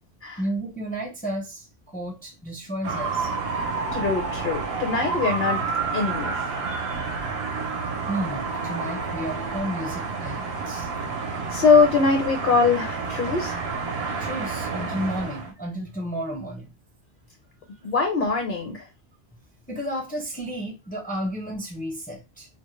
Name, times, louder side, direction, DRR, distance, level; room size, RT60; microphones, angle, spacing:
voice 1, 0.4-1.6 1.9-3.3 8.1-10.9 14.2-16.7 17.7-17.8 19.7-22.5, equal, 10° left, 0.4 m, -32 dB
sound 1, 2.8-15.5, right 4 dB, 75° right, 0.8 m, -29 dB
voice 2, 3.9-5.6 5.9-6.3 11.5-13.6 17.8-18.8, left 4 dB, 60° left, 0.8 m, -22 dB
2.2 x 2.1 x 3.0 m
omnidirectional pair, 1.1 m